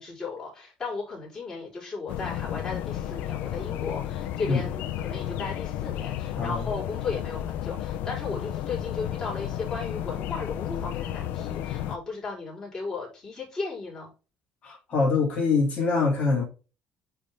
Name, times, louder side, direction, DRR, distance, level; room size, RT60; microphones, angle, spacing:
voice 1, 0.0-14.1, left 4 dB, 20° left, 4.2 m, -35 dB
sound 1, 2.1-12.0, left 11 dB, 70° left, 0.7 m, -33 dB
voice 2, 14.6-16.4, left 4 dB, 40° left, 2.4 m, -24 dB
9.5 x 3.6 x 3.7 m
cardioid pair, 175°, 3 cm